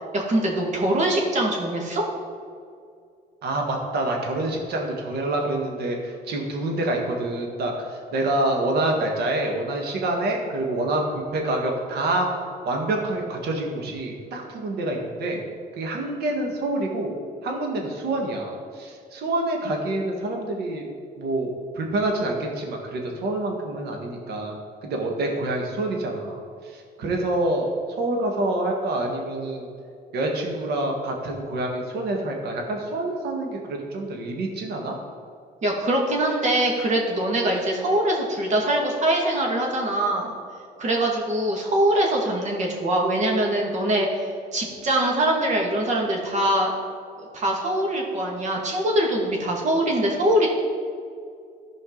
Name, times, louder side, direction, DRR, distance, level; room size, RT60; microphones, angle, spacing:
voice 1, 0.1-2.0 35.6-40.3 40.8-44.3 44.5-46.7 47.3-50.5, right 1 dB, 45° right, 0 dB, 2.1 m, -23 dB
voice 2, 3.4-12.4 12.6-15.4 15.8-17.1 17.4-20.9 21.2-29.7 30.1-35.0, right 2 dB, 70° right, 1 dB, 1.7 m, -27 dB
14.5 x 5.2 x 4.0 m, 2.3 s
cardioid pair, 110°, 17 cm